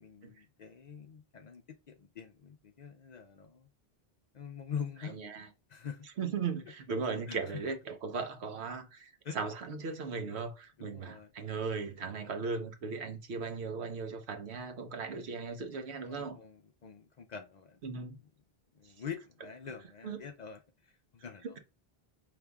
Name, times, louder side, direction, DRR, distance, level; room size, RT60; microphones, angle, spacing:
voice 1, 0.0-3.7 4.3-5.1 5.7-6.1 7.3-7.6 9.2-9.4 10.8-11.3 16.1-17.8 18.2-18.3 18.7-21.6, left 7 dB, 55° left, 0.5 m, -44 dB
voice 2, 5.1-5.5 6.2-16.4 17.8-18.2 20.0-20.2, right 5 dB, 80° right, 1.1 m, -37 dB
5.1 x 3.2 x 2.3 m
omnidirectional pair, 1.1 m